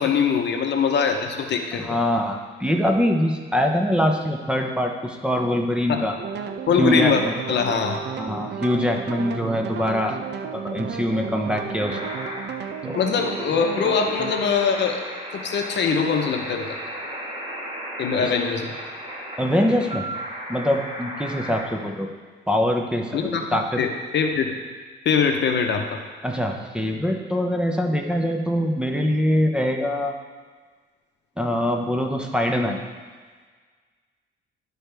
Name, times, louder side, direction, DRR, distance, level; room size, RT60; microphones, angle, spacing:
voice 1, 0.0-2.0 5.9-6.0 6.7-7.2 7.5-8.0 12.9-15.0 15.3-16.8 18.0-18.7 23.1-23.5 23.8-24.6 25.0-26.0, left 6 dB, 60° left, 4 dB, 0.9 m, -22 dB
voice 2, 1.8-6.2 6.8-7.3 8.2-10.2 10.5-12.0 12.8-13.0 18.2-18.3 19.4-20.1 20.5-22.1 22.5-23.8 26.2-30.2 31.4-32.8, equal, 5° right, 2 dB, 0.8 m, -23 dB
sound 1, 6.2-14.5, right 6 dB, 60° right, 0.6 m, -33 dB
sound 2, 11.8-21.6, equal, 25° right, 1.7 m, -35 dB
12.0 x 4.5 x 3.4 m, 1.5 s
cardioid pair, 90°, 20 cm